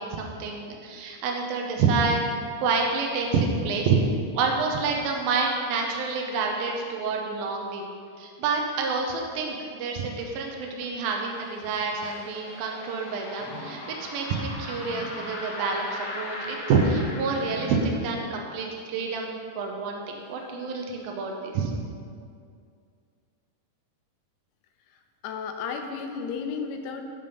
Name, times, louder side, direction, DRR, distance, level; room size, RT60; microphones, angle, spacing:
voice 1, 0.0-4.0 4.3-21.7, right 4 dB, 75° right, 1 dB, 2.6 m, -28 dB
sound 1, 10.2-17.9, left 2 dB, 55° left, 2.3 m, -39 dB
sound 2, 11.3-12.9 13.3-18.6 19.1-19.2 20.0-20.1, equal, 50° right, 1.8 m, -47 dB
voice 2, 25.2-27.0, left 5 dB, 85° left, 4 dB, 2.8 m, -33 dB
11.5 x 5.5 x 5.3 m, 2.3 s
omnidirectional pair, 4.5 m